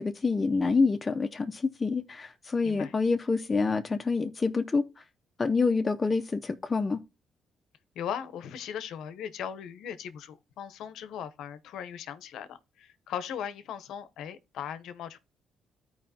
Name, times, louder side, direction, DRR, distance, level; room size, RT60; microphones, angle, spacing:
voice 1, 0.0-5.0 5.4-7.0, left 4 dB, 25° left, 0.5 m, -27 dB
voice 2, 7.9-15.2, left 8 dB, 80° left, 0.7 m, -38 dB
14.0 x 4.7 x 2.8 m
cardioid pair, 100°, 0 cm